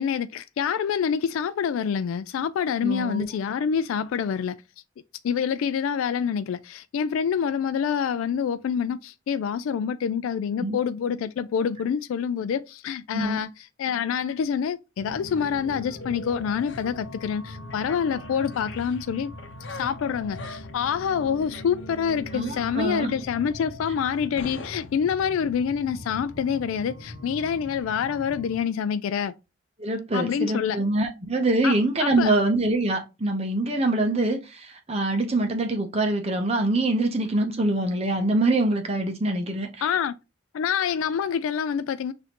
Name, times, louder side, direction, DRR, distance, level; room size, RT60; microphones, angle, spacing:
voice 1, 0.0-4.6 5.2-19.3 19.7-29.3 30.1-30.8 31.6-32.3 39.8-40.1 40.5-42.1, left 7 dB, 85° left, 0.3 m, -27 dB
voice 2, 2.8-3.3 10.6-10.8 13.1-13.4 22.3-23.1 29.8-39.9, right 2 dB, 30° right, 0.6 m, -24 dB
sound 1, 15.0-28.6, left 1 dB, 65° left, 0.8 m, -40 dB
6.3 x 2.6 x 2.9 m
head